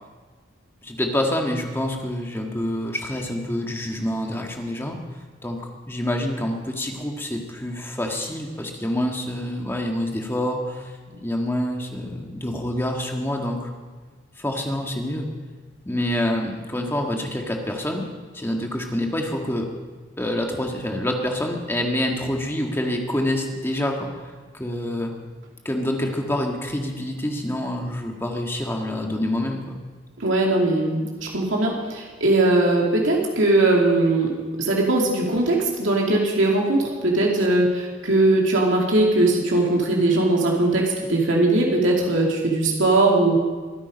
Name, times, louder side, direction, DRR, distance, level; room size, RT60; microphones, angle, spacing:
voice 1, 0.8-5.0 5.4-13.7 14.4-15.3 15.8-18.0 18.3-19.7 20.2-25.1 25.6-29.8, left 1 dB, 10° left, 2 dB, 1.6 m, -27 dB
voice 2, 30.2-31.1 31.3-34.3 34.6-43.4, right 2 dB, 85° right, -2 dB, 2.4 m, -20 dB
23.0 x 8.9 x 5.2 m, 1.5 s
head